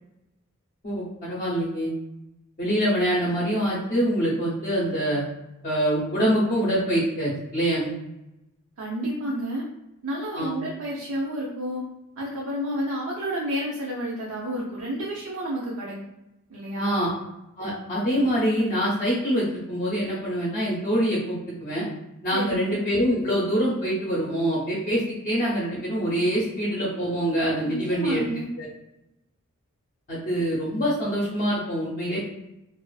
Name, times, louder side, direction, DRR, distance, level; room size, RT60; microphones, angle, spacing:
voice 1, 0.8-1.9 2.6-5.2 5.6-7.9 10.3-10.5 16.8-17.1 17.6-21.9 22.2-28.3 28.6-28.7 30.1-32.2, equal, 35° left, -6 dB, 0.6 m, -25 dB
voice 2, 8.8-9.6 10.0-11.9 12.2-16.0 16.5-16.9 22.3-22.8 27.7-28.5, equal, 70° right, -4 dB, 0.5 m, -30 dB
2.4 x 2.4 x 2.3 m, 0.91 s
head